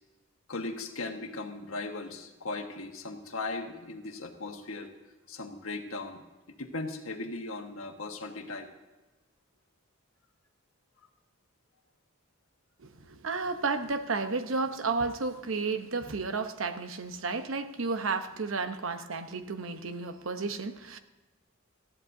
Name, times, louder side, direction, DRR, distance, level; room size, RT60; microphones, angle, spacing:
voice 1, 0.5-4.9 5.3-8.7, left 3 dB, 90° left, 4 dB, 1.5 m, -38 dB
voice 2, 12.8-21.0, right 4 dB, 75° right, 8 dB, 0.9 m, -32 dB
19.0 x 13.5 x 2.7 m, 1.1 s
head